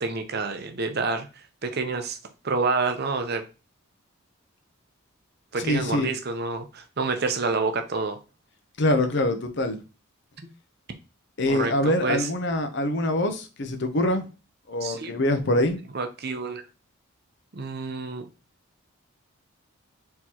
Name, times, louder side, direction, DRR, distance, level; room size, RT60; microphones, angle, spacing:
voice 1, 0.0-2.2 2.4-3.4 5.5-8.2 10.4-10.5 11.5-12.3 14.8-15.1 15.9-16.6 17.5-18.3, right 4 dB, 45° right, 0.7 m, -28 dB
voice 2, 5.6-6.1 8.8-9.8 11.4-14.3 14.7-15.8, left 1 dB, 55° left, 0.7 m, -24 dB
4.6 x 3.7 x 2.9 m
head